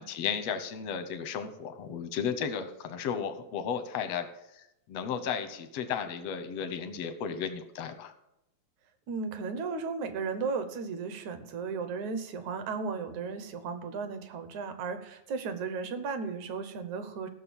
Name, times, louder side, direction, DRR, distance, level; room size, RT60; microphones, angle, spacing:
voice 1, 0.0-4.3 4.5-8.1, left 7 dB, 75° left, 9 dB, 1.5 m, -34 dB
voice 2, 9.1-17.3, right 5 dB, 65° right, 10 dB, 2.1 m, -35 dB
15.0 x 6.4 x 7.1 m, 0.86 s
omnidirectional pair, 4.1 m